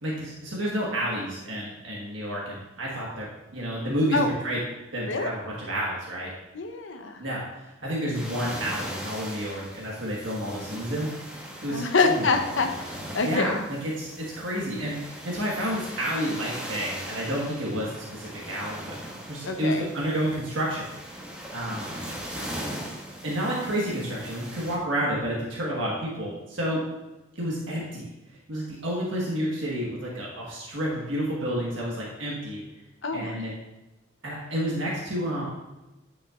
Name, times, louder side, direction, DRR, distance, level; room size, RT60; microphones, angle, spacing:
voice 1, 0.0-3.3 3.5-4.6 4.9-6.3 7.2-11.1 11.6-12.3 13.2-13.6 13.8-18.9 19.2-20.8 21.5-21.9 23.2-26.8 27.3-28.1 28.5-32.6 33.1-33.5 34.2-35.4, equal, 85° right, -4 dB, 1.5 m, -30 dB
voice 2, 6.5-7.2 11.7-13.7 19.5-19.9 22.4-22.5 33.0-33.5, left 3 dB, 85° left, 6 dB, 0.8 m, -26 dB
sound 1, 8.1-24.8, equal, 5° right, 1.0 m, -39 dB
9.1 x 5.8 x 2.5 m, 1.0 s
head